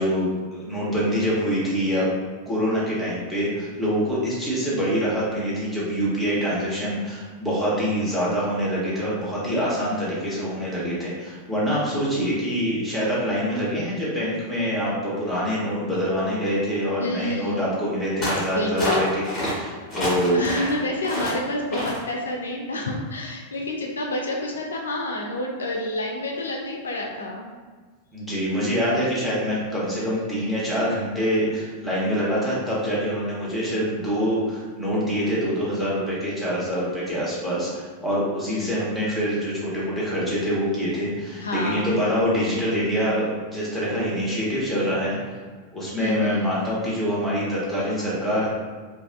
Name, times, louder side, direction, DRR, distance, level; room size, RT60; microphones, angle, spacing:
voice 1, 0.0-2.1 2.5-20.4 28.1-45.2 45.7-48.5, equal, ahead, -8 dB, 0.9 m, -25 dB
voice 2, 17.0-17.7 18.5-19.1 20.3-27.5 38.5-38.8 41.4-41.9 46.0-46.5, left 1 dB, 70° left, 0 dB, 0.3 m, -28 dB
sound 1, 18.2-18.5 18.8-19.5 19.9-20.7 21.0-21.4 21.7-22.0, left 1 dB, 20° left, 1.2 m, -27 dB
2.5 x 2.2 x 2.4 m, 1.5 s
figure-of-eight pair, 90°, 0 cm